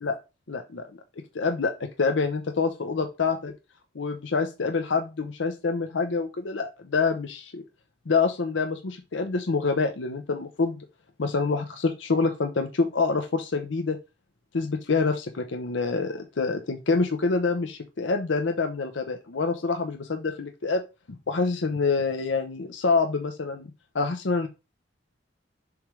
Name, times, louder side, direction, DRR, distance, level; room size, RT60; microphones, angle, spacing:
voice 1, 0.5-0.9 1.3-1.7 2.0-3.5 3.9-7.6 8.1-10.8 11.2-14.0 14.5-20.8 21.3-23.7 23.9-24.5, left 4 dB, 70° left, 6 dB, 0.7 m, -26 dB
7.0 x 3.1 x 4.9 m, 0.28 s
head